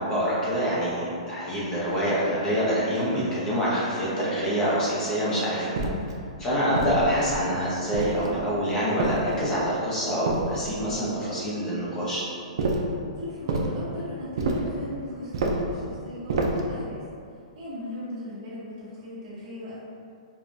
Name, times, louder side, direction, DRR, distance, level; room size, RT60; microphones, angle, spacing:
voice 1, 0.0-5.8 6.4-12.2, equal, 15° left, -8 dB, 0.7 m, -26 dB
sound 1, 5.8-6.2 6.8-7.4 7.9-8.4 9.0-9.6 10.3-10.9 12.6-13.0 13.5-13.8 14.4-14.8 15.3-15.7 16.3-16.7, right 2 dB, 45° right, 0.4 m, -28 dB
voice 2, 13.2-17.0 17.5-19.8, left 1 dB, 25° right, -11 dB, 1.2 m, -38 dB
4.7 x 2.3 x 2.6 m, 2.4 s
hypercardioid pair, 175°, 4 cm